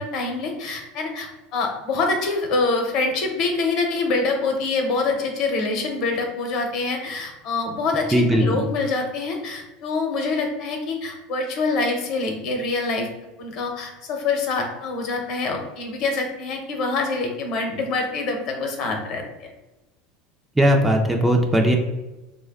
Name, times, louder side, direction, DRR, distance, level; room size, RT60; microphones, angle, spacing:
voice 1, 0.0-13.1 13.4-19.5, left 3 dB, 50° left, 3 dB, 0.8 m, -25 dB
voice 2, 8.1-8.6 20.6-21.8, equal, 5° right, 2 dB, 0.4 m, -18 dB
3.4 x 2.2 x 3.5 m, 1.1 s
supercardioid pair, 135°, 0 cm